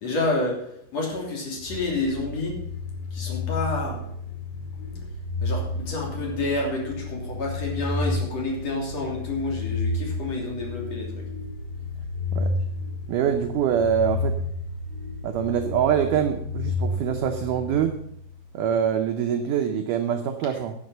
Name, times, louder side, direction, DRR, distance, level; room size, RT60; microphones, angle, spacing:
voice 1, 0.0-2.6 3.1-4.1 5.4-11.2, left 2 dB, 40° left, -1 dB, 3.9 m, -29 dB
sound 1, 1.6-18.5, left 3 dB, 85° left, 3.9 m, -31 dB
voice 2, 13.1-14.4 15.2-18.0 18.5-20.7, right 8 dB, 85° right, 5 dB, 1.8 m, -24 dB
9.9 x 8.5 x 6.6 m, 0.71 s
omnidirectional pair, 4.7 m